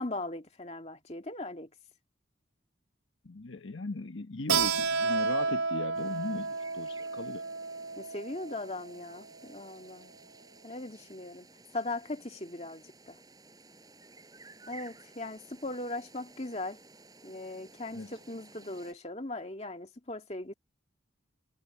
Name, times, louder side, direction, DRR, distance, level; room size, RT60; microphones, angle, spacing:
voice 1, 0.0-1.7 8.0-10.1 10.6-11.5 11.7-13.2 14.7-16.8 17.2-20.5, left 2 dB, 30° left, 2.2 m, -39 dB
voice 2, 3.2-7.4 17.9-18.2, left 2 dB, 70° left, 1.1 m, -38 dB
Keyboard (musical), 4.5-9.8, right 5 dB, 80° right, 3.0 m, -32 dB
sound 1, 5.9-18.9, right 3 dB, 20° right, 7.9 m, -55 dB
head